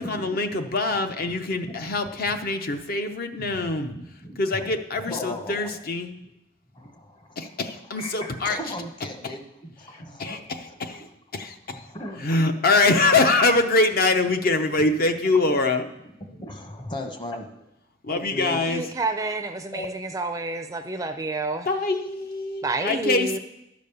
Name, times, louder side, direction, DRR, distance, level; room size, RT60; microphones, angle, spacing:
voice 1, 0.0-3.9 4.4-6.1 7.4-8.6 10.2-11.9 12.2-15.9 18.0-18.8 21.7-23.4, left 3 dB, 50° left, 7 dB, 0.7 m, -24 dB
voice 2, 0.9-1.4 1.6-1.7 2.3-2.4 3.5-4.1 4.5-4.8 5.1-5.8 6.7-7.6 8.0-10.5 11.0-11.1 11.7-12.4 16.2-17.6 18.1-18.6 19.7-19.9, left 1 dB, 25° left, 4 dB, 1.0 m, -37 dB
voice 3, 18.7-21.7 22.6-23.4, right 2 dB, 15° right, 7 dB, 0.4 m, -29 dB
11.5 x 5.1 x 6.8 m, 0.89 s
head